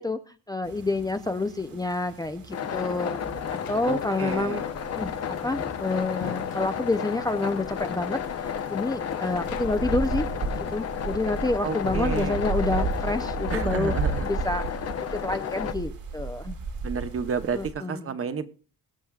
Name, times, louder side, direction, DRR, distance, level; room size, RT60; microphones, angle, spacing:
voice 1, 0.0-3.2 3.5-4.6 5.0-5.1 5.4-10.3 10.5-13.9 14.2-14.8 15.1-16.6 17.5-18.2, left 2 dB, 10° left, 7 dB, 0.5 m, -28 dB
sound 1, 0.6-17.7, right 4 dB, 85° right, 2.9 m, -35 dB
sound 2, 2.5-15.7, left 8 dB, 45° left, 0.8 m, -32 dB
sound 3, 3.4-4.3 5.5-7.4 9.2-10.1 10.3-10.4 11.8-13.0, left 8 dB, 85° left, 1.0 m, -43 dB
voice 2, 3.9-4.6 11.6-12.4 13.5-14.3 16.8-18.5, right 6 dB, 40° right, 10 dB, 0.9 m, -31 dB
22.0 x 7.7 x 2.4 m, 0.38 s
wide cardioid pair, 165°, 34 cm